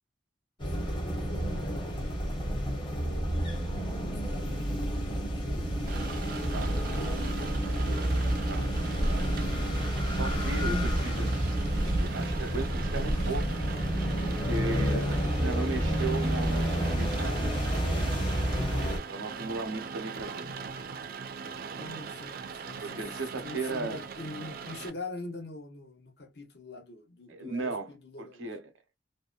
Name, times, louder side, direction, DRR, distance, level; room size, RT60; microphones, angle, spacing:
sound 1, 0.6-19.0, equal, 25° left, 0.8 m, -30 dB
voice 1, 1.3-2.2 3.0-5.7 7.6-7.9 21.8-23.0 23.4-28.5, left 2 dB, 55° left, 0.8 m, -44 dB
Rain, 5.9-24.9, right 5 dB, 50° right, 0.3 m, -41 dB
sound 2, 8.8-9.6 10.2-11.2 11.5-12.1 12.7-13.5, equal, 85° left, 1.0 m, -32 dB
voice 2, 9.8-13.6 14.0-17.5 19.1-20.6 22.8-24.0 27.3-27.9 28.2-28.6, right 3 dB, 90° right, 0.8 m, -37 dB
2.7 x 2.0 x 2.3 m
head